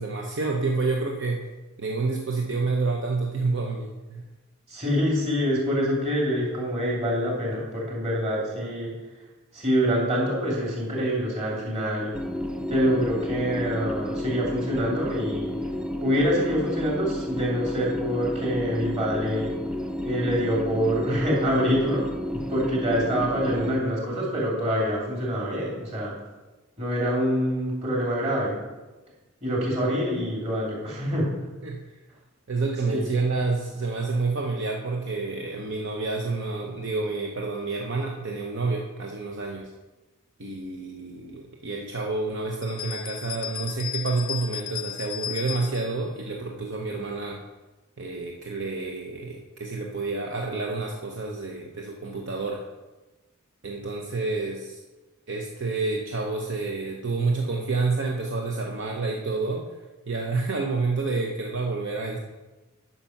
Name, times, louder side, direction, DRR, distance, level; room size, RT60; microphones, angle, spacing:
voice 1, 0.0-1.4 1.8-4.2 29.9-30.0 31.6-31.8 32.5-39.7 40.4-47.4 48.0-52.6 53.6-54.8 55.3-59.6 60.1-62.2, right 3 dB, 55° right, 0 dB, 0.9 m, -29 dB
voice 2, 4.7-8.9 9.5-12.1 12.7-15.5 16.0-19.5 20.0-22.1 22.3-26.1 26.8-28.6 29.4-31.3 32.9-33.0, equal, 30° right, -4 dB, 2.9 m, -25 dB
sound 1, 12.1-23.8, left 1 dB, 5° right, 0.5 m, -31 dB
sound 2, 42.6-45.9, left 10 dB, 40° left, 0.6 m, -35 dB
9.5 x 5.9 x 5.8 m, 1.2 s
head